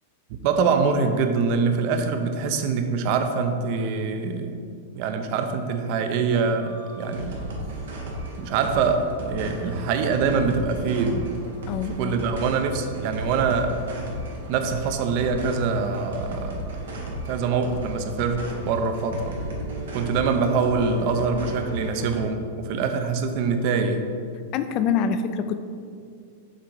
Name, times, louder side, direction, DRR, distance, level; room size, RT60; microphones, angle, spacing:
voice 1, 0.3-4.6 4.9-7.4 8.4-11.3 11.9-13.8 14.5-16.8 17.3-19.3 19.9-24.1, right 5 dB, 50° right, 7 dB, 0.6 m, -24 dB
sound 1, 6.6-22.2, right 1 dB, 90° right, 1.2 m, -34 dB
voice 2, 11.7-12.2 24.5-25.7, left 7 dB, 40° left, 10 dB, 0.4 m, -25 dB
6.6 x 3.7 x 4.6 m, 2.3 s
hypercardioid pair, 135°, 0 cm